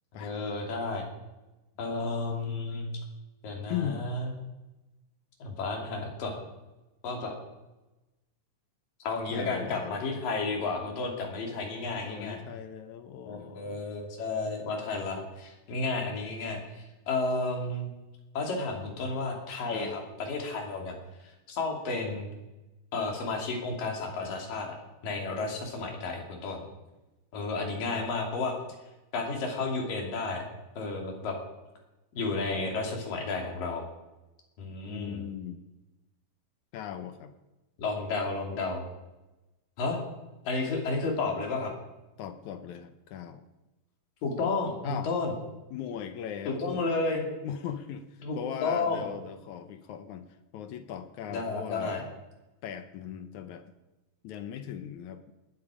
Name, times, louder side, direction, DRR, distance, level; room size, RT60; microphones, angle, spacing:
voice 1, 0.1-1.1 1.8-2.9 3.4-4.3 5.4-6.4 7.0-7.3 9.0-12.4 13.3-17.9 18.3-20.9 21.5-22.3 22.9-24.8 25.0-26.6 27.3-28.5 29.1-30.4 30.8-31.4 32.2-33.8 34.6-35.2 37.8-38.8 39.8-40.0 40.5-41.7 44.2-45.3 46.5-47.2 48.2-49.1 51.3-52.0, left 3 dB, 85° left, 1 dB, 4.4 m, -32 dB
voice 2, 3.7-4.1 9.3-10.1 11.4-13.8 19.7-20.0 34.9-35.6 36.7-37.3 42.2-43.4 44.8-45.1 45.7-46.9 47.4-50.3 50.5-52.1 52.6-53.7 54.2-55.3, left 9 dB, 70° left, 9 dB, 2.1 m, -39 dB
19.5 x 12.5 x 4.9 m, 1.0 s
omnidirectional pair, 3.8 m